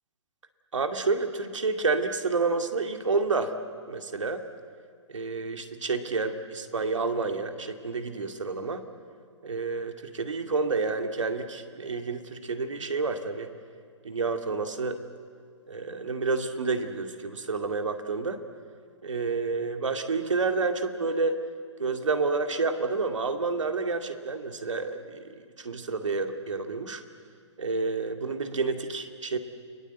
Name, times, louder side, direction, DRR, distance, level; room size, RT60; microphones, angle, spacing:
voice 1, 0.7-3.5 3.9-4.4 5.1-8.8 9.4-13.5 14.0-15.0 15.7-18.4 19.0-21.4 21.8-25.3 25.6-27.0 27.6-29.4, right 4 dB, 80° right, 6 dB, 2.4 m, -29 dB
29.5 x 21.0 x 8.1 m, 2.2 s
hypercardioid pair, 130°, 16 cm